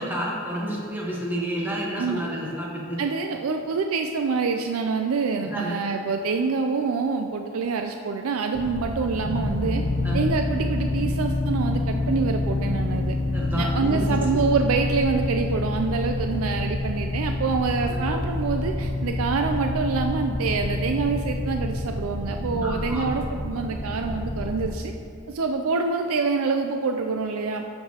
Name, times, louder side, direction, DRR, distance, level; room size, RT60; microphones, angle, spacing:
voice 1, 0.0-3.0 5.4-5.8 10.0-10.2 13.3-14.1 14.3-14.4 17.9-18.1 22.6-23.1, equal, 10° right, -4 dB, 1.2 m, -30 dB
voice 2, 3.0-9.8 10.1-13.2 13.5-24.9 25.3-27.6, right 4 dB, 70° right, 5 dB, 0.4 m, -26 dB
sound 1, 8.5-24.7, left 2 dB, 35° left, 0.7 m, -27 dB
12.0 x 6.6 x 2.9 m, 2.6 s
head